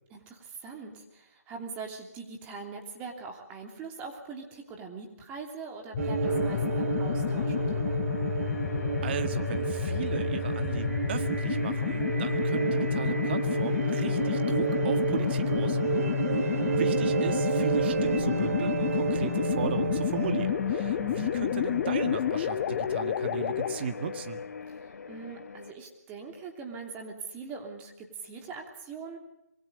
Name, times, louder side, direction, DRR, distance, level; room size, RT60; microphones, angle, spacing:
voice 1, 0.1-8.3 16.3-16.8 24.7-29.2, right 4 dB, 15° right, 2 dB, 3.0 m, -42 dB
sound 1, 5.9-23.7, left 8 dB, 30° left, 1.4 m, -30 dB
sound 2, 6.0-22.4, right 7 dB, 55° right, 1.1 m, -31 dB
sound 3, 6.2-25.7, left 5 dB, 70° left, 1.3 m, -40 dB
voice 2, 9.0-16.1 16.8-24.4, right 7 dB, 40° right, 8 dB, 1.8 m, -36 dB
27.0 x 23.0 x 5.2 m, 0.85 s
hypercardioid pair, 155°, 9 cm